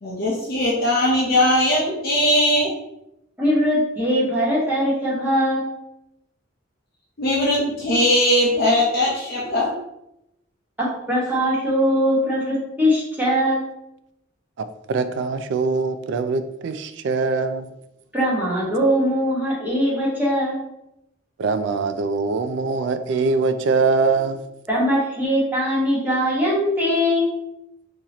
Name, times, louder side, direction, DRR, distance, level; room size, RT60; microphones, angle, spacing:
voice 1, 0.0-2.7 7.2-9.7, left 1 dB, 50° left, -4 dB, 0.7 m, -19 dB
voice 2, 3.4-5.7 10.8-13.6 18.1-20.6 24.7-27.3, equal, 10° right, -7 dB, 1.3 m, -21 dB
voice 3, 14.9-17.7 21.4-24.4, right 4 dB, 60° right, 10 dB, 0.3 m, -22 dB
3.9 x 2.9 x 2.9 m, 0.86 s
head